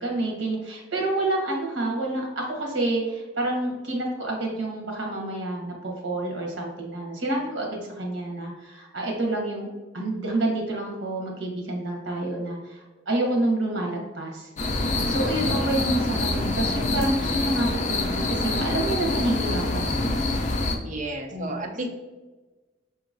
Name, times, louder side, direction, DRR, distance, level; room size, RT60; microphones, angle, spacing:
voice 1, 0.0-9.7 9.9-14.5 15.1-20.2 21.3-21.6, right 2 dB, 80° right, 0 dB, 1.1 m, -28 dB
sound 1, 14.6-20.8, left 2 dB, 40° left, 0.5 m, -26 dB
voice 2, 20.8-21.9, right 1 dB, 40° right, 2 dB, 0.6 m, -32 dB
5.4 x 2.9 x 2.5 m, 1.2 s
head